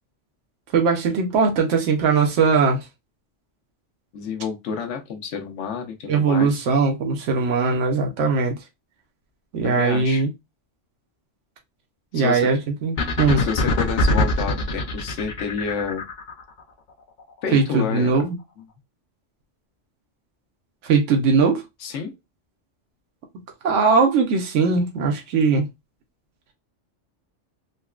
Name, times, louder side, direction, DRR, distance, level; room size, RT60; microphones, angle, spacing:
voice 1, 0.7-2.8 6.1-8.6 9.5-10.3 12.1-13.4 17.5-18.4 20.8-21.6 23.6-25.7, right 4 dB, 85° right, 1.1 m, -20 dB
voice 2, 4.1-6.6 9.6-10.2 12.1-12.5 13.4-16.1 17.4-18.1 21.8-22.1, left 6 dB, 75° left, 1.0 m, -29 dB
sound 1, 13.0-16.4, left 2 dB, 50° left, 0.6 m, -23 dB
3.9 x 2.1 x 2.3 m
omnidirectional pair, 1.2 m